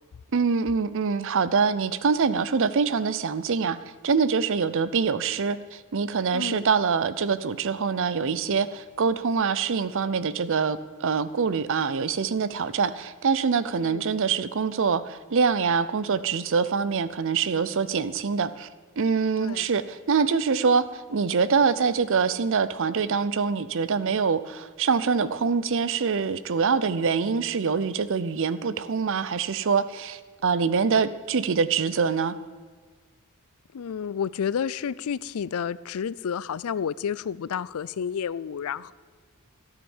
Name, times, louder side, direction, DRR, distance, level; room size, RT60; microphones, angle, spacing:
voice 1, 0.3-3.8 4.0-18.7 19.0-32.3, right 5 dB, 60° right, 15 dB, 0.6 m, -24 dB
voice 2, 6.3-6.7 13.8-14.0 19.4-19.7 33.7-38.9, left 7 dB, 75° left, 20 dB, 0.4 m, -30 dB
12.5 x 8.9 x 7.2 m, 1.5 s
head